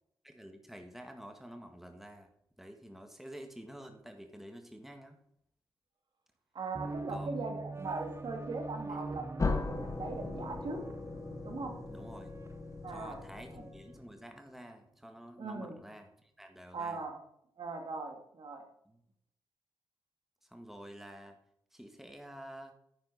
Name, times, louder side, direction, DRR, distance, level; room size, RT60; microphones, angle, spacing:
voice 1, 0.2-2.3 2.6-5.2 7.1-7.3 8.9-9.0 11.9-12.3 12.9-17.1 18.8-19.0 20.4-21.4 21.7-22.7, equal, 5° right, 5 dB, 1.8 m, -49 dB
voice 2, 6.5-10.8 11.4-11.8 12.8-13.2 13.5-13.7 15.4-15.8 16.7-17.2 17.6-18.6, right 3 dB, 60° right, 3 dB, 2.3 m, -40 dB
sound 1, 6.7-14.1, right 3 dB, 30° right, 1.0 m, -44 dB
sound 2, 9.4-14.1, left 3 dB, 35° left, 1.2 m, -38 dB
9.7 x 9.6 x 4.2 m, 0.73 s
supercardioid pair, 50°, 9 cm